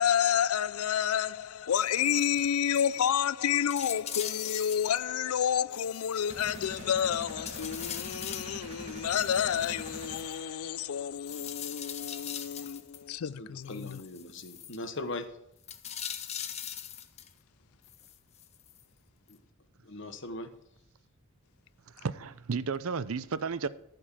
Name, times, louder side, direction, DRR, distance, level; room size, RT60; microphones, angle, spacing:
voice 1, 0.0-13.7, left 9 dB, 85° left, 0.4 m, -29 dB
sound 1, 1.7-2.4 2.7-2.9 3.2-3.3 3.7-5.0 5.7-7.0 7.4-8.6 9.1-10.3 11.3-13.0 13.7-14.8 15.6-17.3 17.8-18.8 19.3-19.4, left 9 dB, 30° left, 0.7 m, -41 dB
sound 2, 6.3-11.0, right 1 dB, 30° right, 1.8 m, -45 dB
voice 2, 13.2-15.3 19.3-19.4 19.8-20.5, left 2 dB, 60° left, 1.2 m, -40 dB
voice 3, 22.0-23.7, right 5 dB, 75° right, 0.6 m, -33 dB
14.0 x 5.3 x 7.4 m
head